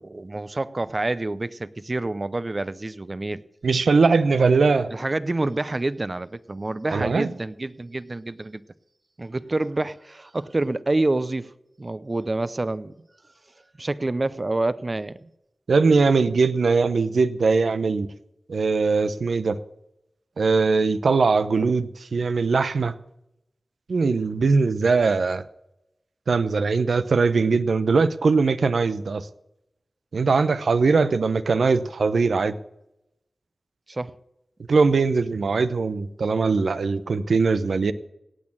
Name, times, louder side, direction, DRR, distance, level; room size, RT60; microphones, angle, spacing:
voice 1, 0.0-3.4 4.9-8.6 9.2-11.5 11.8-12.9 13.8-15.3 33.9-34.1, right 2 dB, 40° right, 0.6 m, -27 dB
voice 2, 3.6-4.9 6.9-7.3 15.7-18.1 18.5-19.6 20.4-22.9 23.9-25.4 26.3-29.3 30.1-32.6 34.7-37.9, right 4 dB, 90° right, 0.7 m, -21 dB
17.5 x 6.4 x 7.2 m
wide cardioid pair, 60°, 0 cm